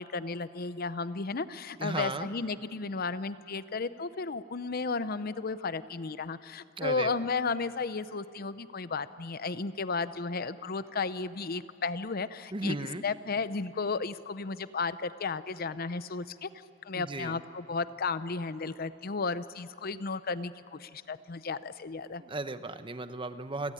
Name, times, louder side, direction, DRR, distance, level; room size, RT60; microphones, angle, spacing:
voice 1, 0.0-12.8 13.0-16.5 16.8-22.2, left 4 dB, 50° left, 14 dB, 0.7 m, -34 dB
voice 2, 1.8-2.3 6.8-7.1 12.5-13.0 16.9-17.4 22.2-23.7, right 2 dB, 25° right, 11 dB, 0.9 m, -35 dB
29.0 x 17.5 x 10.0 m, 2.5 s
head